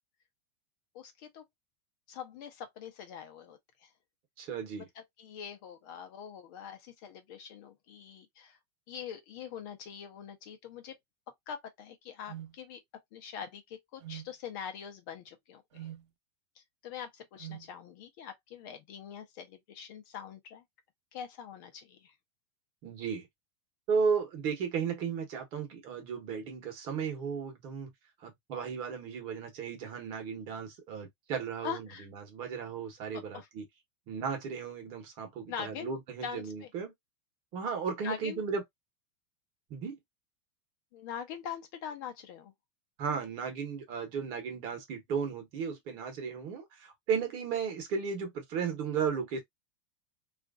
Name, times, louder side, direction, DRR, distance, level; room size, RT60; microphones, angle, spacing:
voice 1, 0.9-1.4 2.1-3.9 5.2-8.6 8.9-11.0 11.5-12.8 13.1-15.9 16.8-20.6 21.1-22.1 31.6-32.1 33.1-33.5 35.5-35.9 36.2-36.7 38.0-38.4 40.9-42.5, left 8 dB, 45° left, 0.7 m, -43 dB
voice 2, 4.4-4.9 22.8-23.3 23.9-27.9 28.2-31.9 32.1-33.6 34.1-36.9 37.5-38.6 39.7-40.0 43.0-49.4, right 6 dB, 35° right, 1.0 m, -35 dB
sound 1, 12.3-12.6 14.0-14.3 15.7-16.1 17.4-17.7, right 12 dB, 85° right, 0.6 m, -43 dB
2.8 x 2.5 x 2.4 m
supercardioid pair, 170°, 14 cm